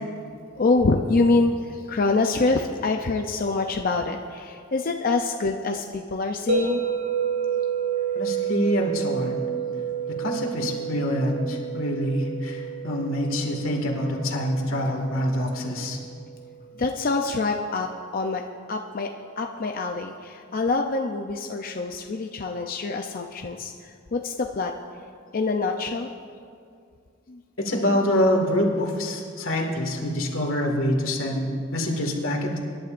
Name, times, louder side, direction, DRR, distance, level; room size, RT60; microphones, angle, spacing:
voice 1, 0.6-6.8 16.8-18.4 18.7-23.7 24.1-24.7 25.3-26.1 27.3-27.4, left 3 dB, 45° left, 3 dB, 0.5 m, -25 dB
sound 1, 6.5-16.6, right 7 dB, 85° right, 2.5 m, -30 dB
voice 2, 8.2-9.5 10.2-16.0 27.6-32.6, equal, 85° left, 1 dB, 2.0 m, -25 dB
25.5 x 11.5 x 2.6 m, 2.3 s
head